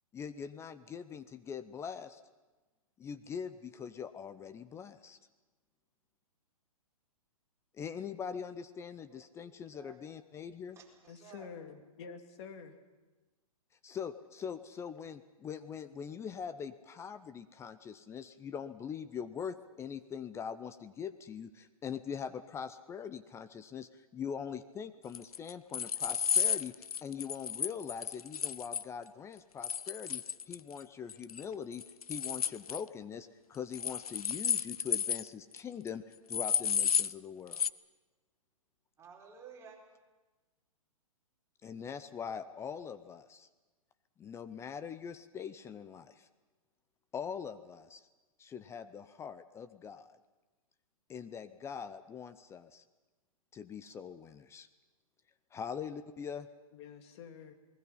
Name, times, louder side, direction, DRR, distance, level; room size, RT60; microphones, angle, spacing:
voice 1, 0.1-2.2 3.0-5.2 7.7-10.8 13.8-31.8 32.1-37.7 41.6-43.5 44.2-46.3 47.1-48.1 48.4-50.1 51.1-52.8 53.5-54.7 55.5-56.5, left 7 dB, 15° left, 12 dB, 0.6 m, -42 dB
voice 2, 9.1-10.0 10.7-11.5 39.0-39.8, right 6 dB, 15° right, -2 dB, 4.7 m, -55 dB
voice 3, 11.1-12.8 56.7-57.5, left 6 dB, 50° left, 7 dB, 2.4 m, -48 dB
sound 1, 25.2-28.8 29.6-30.8 31.1-31.4 31.7-32.8 33.7-35.3 35.6-35.7 35.9-36.0 36.3-37.1 37.5-37.7, left 7 dB, 85° left, 0.6 m, -32 dB
28.0 x 20.0 x 5.6 m, 1.2 s
hypercardioid pair, 130°, 19 cm